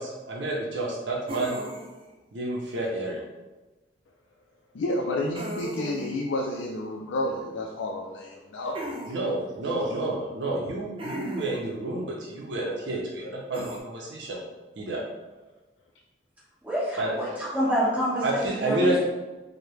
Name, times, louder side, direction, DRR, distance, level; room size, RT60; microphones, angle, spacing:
voice 1, 0.0-1.6 2.3-3.2 9.1-14.4 14.8-15.0 17.0-17.2 18.2-19.0, right 1 dB, 75° right, -2 dB, 0.6 m, -29 dB
sound 1, 1.3-2.1 5.3-6.1 8.7-9.1 11.0-11.7 13.5-13.8, right 1 dB, 30° right, 0.4 m, -36 dB
voice 2, 4.7-8.8, left 1 dB, 90° left, -1 dB, 0.4 m, -30 dB
voice 3, 16.6-19.0, equal, 10° right, -10 dB, 1.4 m, -27 dB
4.6 x 2.2 x 3.2 m, 1.1 s
head